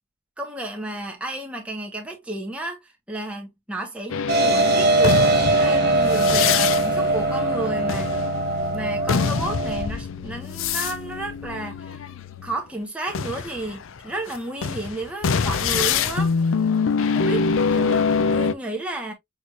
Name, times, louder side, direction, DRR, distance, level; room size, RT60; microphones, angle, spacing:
voice 1, 0.4-8.2 8.7-12.0 12.4-16.3 17.1-19.1, right 1 dB, 5° right, 1.2 m, -32 dB
sound 1, 4.1-12.6 13.1-18.5, left 5 dB, 65° left, 0.4 m, -25 dB
sound 2, 4.3-9.9, right 3 dB, 50° right, 1.0 m, -21 dB
6.3 x 3.2 x 2.5 m
head